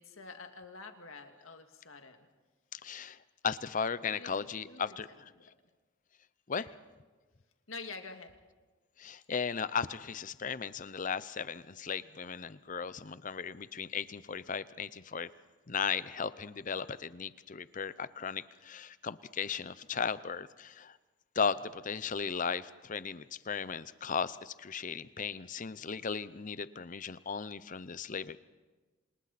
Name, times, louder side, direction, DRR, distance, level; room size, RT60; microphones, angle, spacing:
voice 1, 0.0-2.3 4.1-5.0 5.3-5.5 6.6-6.8 7.7-8.3, left 4 dB, 85° left, 5 dB, 2.1 m, -47 dB
voice 2, 2.7-3.2 3.4-5.3 6.5-6.6 9.0-15.3 15.7-21.0 21.4-28.4, left 6 dB, 40° left, 16 dB, 0.6 m, -36 dB
28.0 x 27.0 x 4.2 m, 1.3 s
head